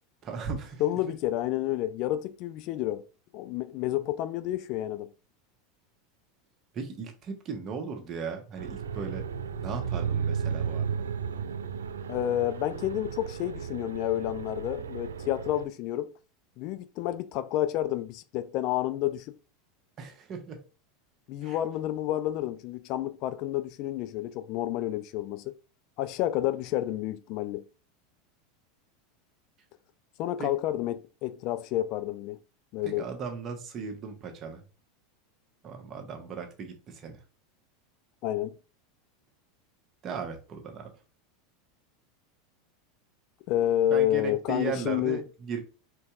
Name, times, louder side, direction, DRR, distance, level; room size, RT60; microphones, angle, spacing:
voice 1, 0.2-0.8 6.7-9.3 9.6-11.1 20.0-20.6 21.4-21.6 30.4-30.5 32.8-34.6 35.6-37.2 40.0-40.9 43.9-45.6, right 5 dB, 35° right, 1.2 m, -37 dB
voice 2, 0.8-3.0 3.3-5.1 12.1-16.1 16.6-19.4 21.3-25.6 26.0-27.6 30.2-32.4 32.7-33.0 38.2-38.6 43.5-45.2, left 13 dB, 50° left, 0.4 m, -29 dB
sound 1, 8.6-15.6, right 7 dB, 80° right, 0.3 m, -34 dB
4.3 x 4.0 x 2.3 m
hypercardioid pair, 85°, 0 cm